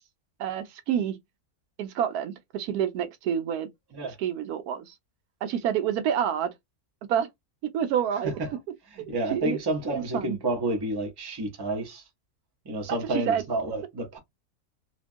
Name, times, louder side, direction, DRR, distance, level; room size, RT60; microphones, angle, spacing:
voice 1, 0.4-1.1 1.8-3.7 4.2-4.9 5.4-6.5 7.1-7.3 7.7-8.3 9.0-9.6 9.9-10.4 12.9-13.4, right 9 dB, 90° right, 1.1 m, -28 dB
voice 2, 8.9-12.0 12.6-14.2, right 2 dB, 25° right, 0.6 m, -30 dB
2.9 x 2.3 x 2.5 m
omnidirectional pair, 1.6 m